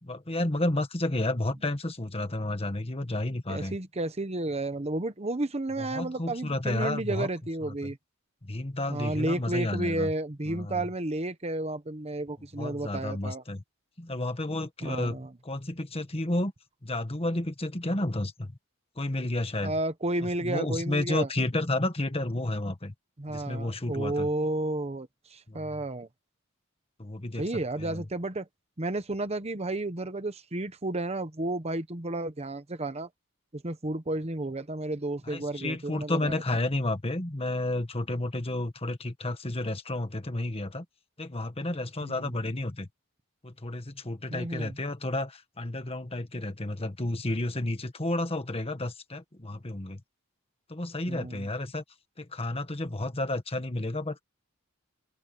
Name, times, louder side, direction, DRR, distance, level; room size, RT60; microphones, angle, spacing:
voice 1, 0.0-3.8 5.8-7.3 7.6-7.9 8.4-10.1 10.5-10.9 12.6-13.6 14.0-15.2 15.4-16.5 16.8-18.6 19.0-19.7 20.2-22.9 23.3-24.3 25.5-25.7 27.0-27.4 27.8-28.0 35.3-40.8 41.2-42.9 43.4-50.0 50.7-51.8 52.2-54.2, left 1 dB, 30° left, 1.6 m, -31 dB
voice 2, 3.5-8.0 8.9-13.4 14.8-15.3 19.6-21.3 23.2-26.1 27.4-28.5 28.8-33.1 33.5-36.6 42.0-42.1 44.3-44.8 51.1-51.5, right 2 dB, 30° right, 1.1 m, -32 dB
open air
head